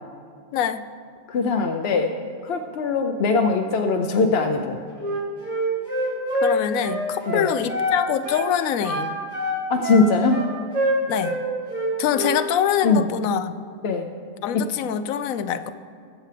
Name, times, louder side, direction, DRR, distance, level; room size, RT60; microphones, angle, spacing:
voice 1, 0.5-0.8 6.4-9.1 11.1-11.4 12.0-13.5 14.4-15.7, left 9 dB, 85° left, 12 dB, 1.0 m, -24 dB
voice 2, 1.3-2.1 2.4-4.8 7.3-7.5 9.7-10.4 12.8-13.0 13.8-14.1 14.5-14.6, left 4 dB, 60° left, 4 dB, 0.7 m, -21 dB
Wind instrument woodwind instrument, 5.0-8.0 8.2-8.5 8.8-11.4 11.7-12.4, equal, 85° right, 2.9 m, -25 dB
21.0 x 8.0 x 3.3 m, 2.2 s
omnidirectional pair, 1.4 m